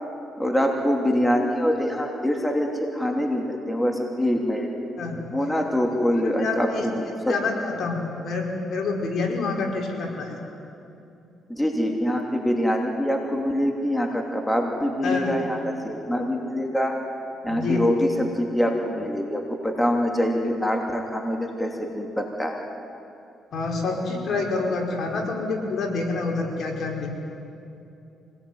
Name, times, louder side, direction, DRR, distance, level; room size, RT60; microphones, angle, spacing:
voice 1, 0.4-4.7 5.3-7.0 11.5-17.0 17.4-22.6, equal, 10° left, 2 dB, 2.9 m, -24 dB
voice 2, 6.2-6.8 7.3-10.4 15.0-15.4 17.5-17.8 23.5-27.1, left 3 dB, 60° left, 1 dB, 4.7 m, -27 dB
25.5 x 19.0 x 9.5 m, 2.7 s
cardioid pair, 90°, 0 cm